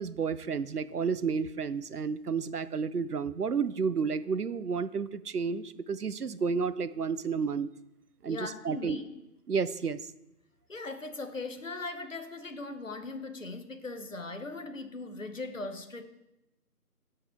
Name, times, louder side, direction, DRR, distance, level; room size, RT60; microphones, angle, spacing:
voice 1, 0.0-7.7 8.2-9.0 9.5-10.0, right 5 dB, 70° right, 15 dB, 0.6 m, -31 dB
voice 2, 8.3-9.1 10.7-16.0, left 3 dB, 55° left, 8 dB, 0.9 m, -39 dB
14.0 x 4.8 x 4.4 m, 0.92 s
figure-of-eight pair, 170°, 48 cm